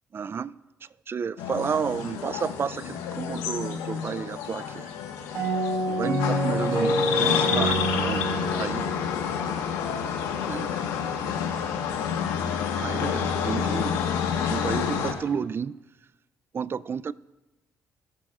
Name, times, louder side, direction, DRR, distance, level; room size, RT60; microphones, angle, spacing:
voice 1, 0.1-0.6 1.1-4.9 5.9-8.9 10.5-10.7 12.8-14.1 14.5-15.8 16.5-17.1, right 6 dB, 40° right, 0.4 m, -31 dB
sound 1, 1.4-15.1, left 7 dB, 90° left, 1.4 m, -29 dB
sound 2, 5.3-10.0, right 1 dB, 65° right, 1.7 m, -27 dB
21.5 x 7.5 x 2.5 m
supercardioid pair, 60°, 6 cm